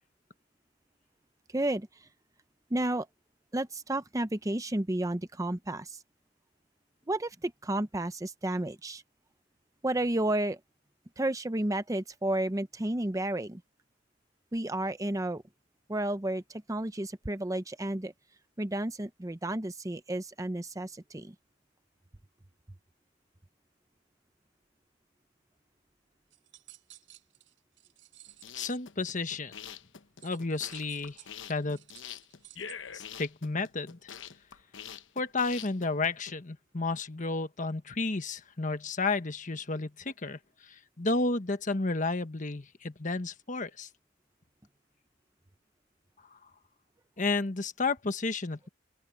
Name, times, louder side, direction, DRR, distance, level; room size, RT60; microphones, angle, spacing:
voice 1, 1.5-2.1 2.7-3.1 3.5-6.0 7.1-9.0 9.8-10.6 11.2-13.6 14.5-15.4 15.9-18.1 18.6-21.3, right 1 dB, 15° right, 0.7 m, -32 dB
sound 1, 26.3-28.6 30.2-32.7, right 15 dB, 75° right, 4.7 m, -55 dB
sound 2, 28.3-36.3, left 8 dB, 75° left, 1.0 m, -45 dB
voice 2, 28.5-29.5 30.2-31.2 31.5-31.8 32.9-34.1 35.1-43.9 46.3-46.4 47.2-48.7, left 3 dB, 40° left, 1.3 m, -32 dB
open air
head